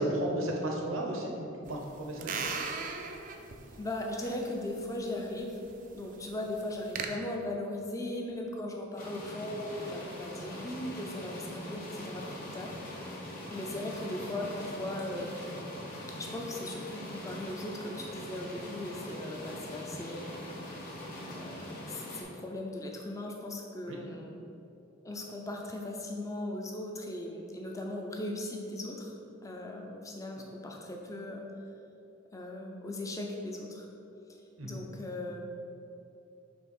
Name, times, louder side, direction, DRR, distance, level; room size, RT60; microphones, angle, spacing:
voice 1, 0.0-2.4 23.9-24.0 34.6-34.7, right 1 dB, 80° right, 0 dB, 0.9 m, -33 dB
sound 1, 1.7-7.1, right 5 dB, 40° right, 0.4 m, -40 dB
voice 2, 3.8-5.5 5.9-12.8 13.1-15.4 16.2-20.3 20.8-21.0 21.3-24.4 25.0-29.1 29.4-31.4 32.3-33.9 34.6-35.4, left 1 dB, 15° left, 0 dB, 0.5 m, -38 dB
sound 2, 9.0-22.2, left 1 dB, 40° left, 1.2 m, -42 dB
5.2 x 3.4 x 5.4 m, 2.8 s
head